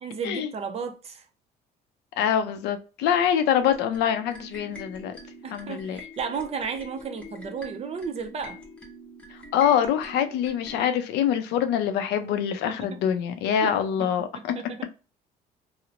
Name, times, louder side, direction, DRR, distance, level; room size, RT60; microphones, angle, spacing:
voice 1, 0.0-1.2 5.4-8.6 12.7-13.1 13.5-14.3 14.6-14.9, right 6 dB, 40° right, 0.5 m, -34 dB
voice 2, 2.2-5.1 5.5-6.0 9.5-14.5, left 9 dB, 85° left, 0.5 m, -25 dB
sound 1, 3.6-10.8, left 1 dB, 5° left, 0.8 m, -45 dB
2.9 x 2.0 x 2.5 m
cardioid pair, 110°, 17 cm